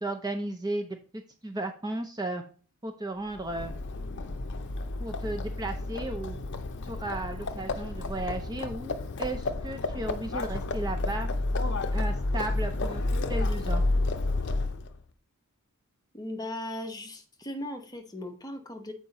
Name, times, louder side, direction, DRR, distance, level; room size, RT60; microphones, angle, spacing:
voice 1, 0.0-2.4 2.8-3.7 5.0-6.4 6.9-11.3 11.9-13.8, right 2 dB, 20° right, 5 dB, 0.6 m, -35 dB
Livestock farm animals working animals, 3.3-15.0, left 2 dB, 55° left, 0.6 m, -31 dB
voice 2, 16.1-18.9, left 1 dB, 15° left, 4 dB, 1.0 m, -38 dB
7.1 x 4.8 x 4.0 m, 0.41 s
head